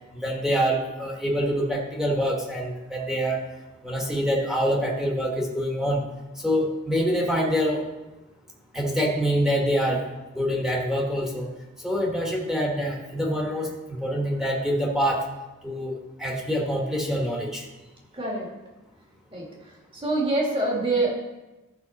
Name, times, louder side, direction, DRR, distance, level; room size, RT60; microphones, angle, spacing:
voice 1, 0.1-3.4 3.8-6.0 6.4-7.8 8.7-10.1 10.3-11.5 11.8-15.2 15.6-17.6, equal, ahead, -2 dB, 1.2 m, -25 dB
voice 2, 18.1-18.5 19.3-21.1, right 2 dB, 25° right, -2 dB, 2.0 m, -26 dB
13.5 x 6.0 x 4.1 m, 1.1 s
head